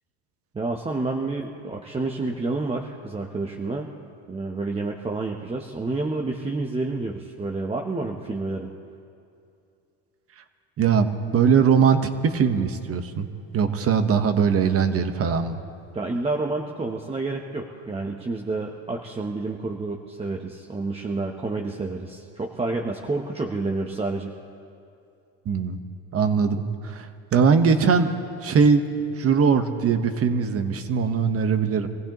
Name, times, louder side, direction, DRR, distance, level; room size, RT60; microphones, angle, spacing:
voice 1, 0.5-3.9 4.3-8.7 15.9-24.3, right 3 dB, 15° right, 1 dB, 0.9 m, -29 dB
voice 2, 10.8-13.3 13.5-15.6 25.4-25.8 26.1-28.1 28.4-28.8 29.2-31.9, right 6 dB, 35° right, 8 dB, 1.2 m, -21 dB
25.5 x 15.5 x 3.0 m, 2.6 s
supercardioid pair, 110°, 38 cm